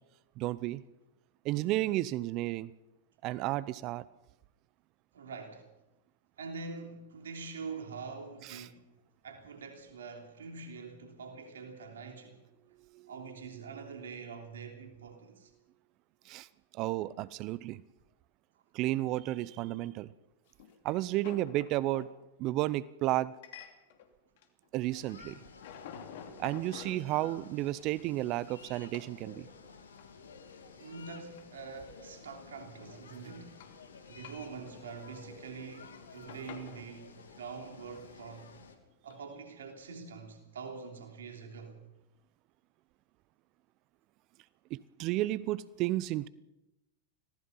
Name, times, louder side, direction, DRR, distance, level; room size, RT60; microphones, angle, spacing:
voice 1, 0.4-0.8 1.4-2.7 3.2-4.0 8.5-8.7 16.3-16.5 16.7-17.8 18.7-20.1 20.8-22.1 22.4-23.3 24.7-25.4 26.4-29.4 44.7-46.3, right 16 dB, 45° right, 0.7 m, -32 dB
voice 2, 5.1-5.7 6.4-8.9 9.2-12.4 13.1-15.5 30.8-33.6 34.1-38.5 39.0-41.8, right 5 dB, 75° right, 3.2 m, -45 dB
sound 1, 20.5-22.1 23.4-24.1 24.4-25.1 25.3-28.6 28.9-29.2 29.7-30.2 30.5-30.6 30.8-31.9 32.3-33.8 34.1-35.4 35.7-36.9 37.6-37.8 39.1-39.2, left 8 dB, 60° left, 2.8 m, -50 dB
sound 2, 24.9-38.8, left 5 dB, 80° left, 2.8 m, -53 dB
25.5 x 18.5 x 5.7 m
hypercardioid pair, 100°, 0 cm